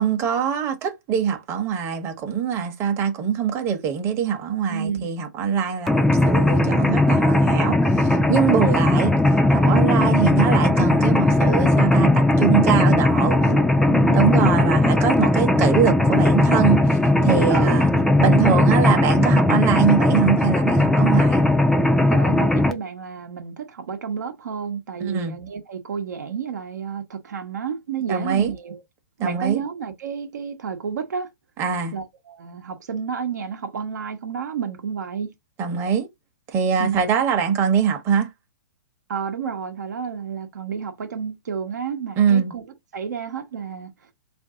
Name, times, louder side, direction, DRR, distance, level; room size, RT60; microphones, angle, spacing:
voice 1, 0.0-9.1 9.5-13.4 14.1-17.9 18.2-21.4 25.0-25.4 28.1-28.5 29.2-29.6 31.6-31.9 35.6-36.1 36.5-38.3 42.2-42.5, right 7 dB, 30° right, 0.8 m, -23 dB
voice 2, 4.7-5.1 8.5-8.9 9.6-9.9 13.0-14.7 17.5-18.6 22.1-28.8 29.2-31.3 31.9-35.3 36.8-37.0 39.1-42.6 42.9-43.9, right 6 dB, 80° right, 0.8 m, -31 dB
Mechanisms, 5.9-22.7, left 1 dB, 5° left, 0.4 m, -18 dB
3.5 x 2.6 x 3.6 m
hypercardioid pair, 130°, 9 cm